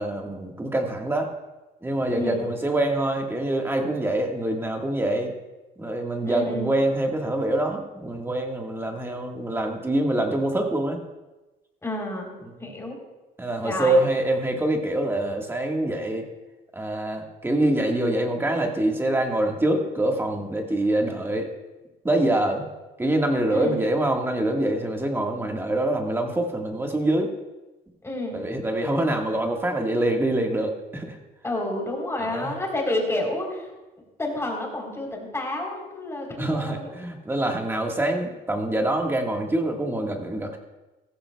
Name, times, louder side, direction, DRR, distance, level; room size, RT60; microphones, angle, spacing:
voice 1, 0.0-1.3 1.8-5.3 5.8-11.0 13.4-16.3 16.7-21.5 22.0-22.6 23.0-27.3 28.3-31.2 32.2-32.5 36.4-40.6, right 1 dB, 15° right, 2 dB, 1.6 m, -25 dB
voice 2, 2.1-2.4 6.3-6.8 11.8-12.3 12.6-13.0 13.6-14.0 23.5-23.8 28.0-28.4 31.4-33.7 34.2-36.9 37.7-37.8, left 1 dB, 15° left, 0 dB, 3.7 m, -29 dB
15.5 x 14.5 x 2.3 m, 1.1 s
cardioid pair, 110°, 17 cm